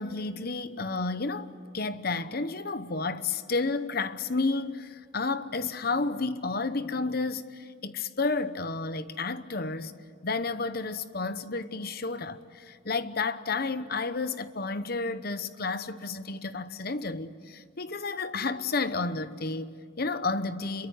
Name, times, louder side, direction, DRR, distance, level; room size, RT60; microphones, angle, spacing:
voice 1, 0.0-9.9 10.2-20.9, left 3 dB, 45° left, 0.9 m, -31 dB
26.5 x 23.0 x 9.5 m
head